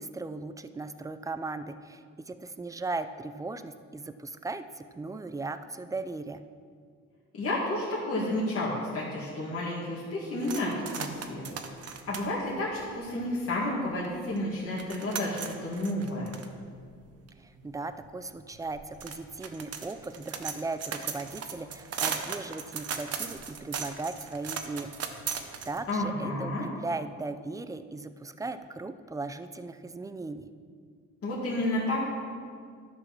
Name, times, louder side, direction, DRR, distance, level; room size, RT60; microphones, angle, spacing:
voice 1, 0.0-6.4 17.4-24.9 25.3-30.5, right 3 dB, 10° right, 11 dB, 0.5 m, -37 dB
voice 2, 7.3-11.5 12.1-16.4 25.9-26.7 31.2-32.0, left 1 dB, 50° left, -7 dB, 2.2 m, -31 dB
sound 1, 10.4-13.6 14.0-14.1 14.4-26.0, right 6 dB, 55° right, 1.0 m, -38 dB
11.0 x 6.2 x 6.0 m, 2.1 s
cardioid pair, 90°, 30 cm